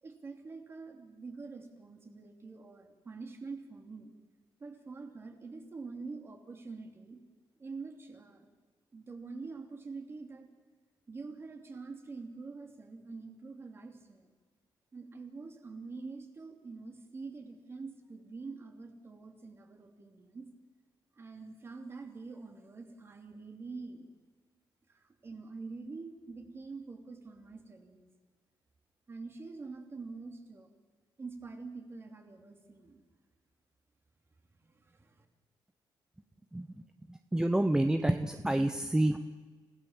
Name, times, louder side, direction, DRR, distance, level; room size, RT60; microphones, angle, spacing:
voice 1, 0.0-4.1 4.6-7.2 7.6-8.5 8.9-10.5 11.1-14.3 14.9-20.5 21.2-24.1 24.9-28.1 29.1-30.7 31.2-33.0 34.6-35.2, right 4 dB, 30° right, 4 dB, 2.9 m, -45 dB
voice 2, 36.5-39.2, right 1 dB, 10° right, 8 dB, 0.8 m, -29 dB
29.5 x 17.0 x 7.4 m, 1.4 s
wide cardioid pair, 165°, 9 cm